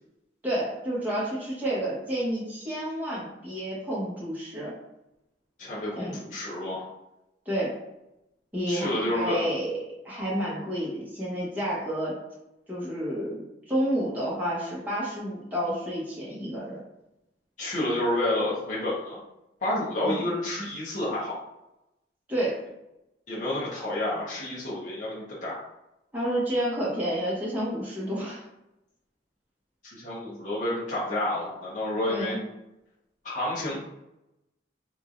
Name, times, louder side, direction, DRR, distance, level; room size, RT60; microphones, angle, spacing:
voice 1, 0.4-4.7 6.0-6.2 7.4-7.8 8.5-9.8 10.0-12.1 12.7-16.8 20.0-20.2 22.3-22.6 26.1-28.4 32.1-32.4, equal, 10° right, -7 dB, 1.2 m, -30 dB
voice 2, 5.6-6.8 8.7-9.5 17.6-19.2 19.6-21.4 23.3-25.6 29.8-32.4 33.2-33.8, left 1 dB, 40° left, -8 dB, 0.9 m, -29 dB
3.6 x 3.1 x 2.6 m, 0.90 s
head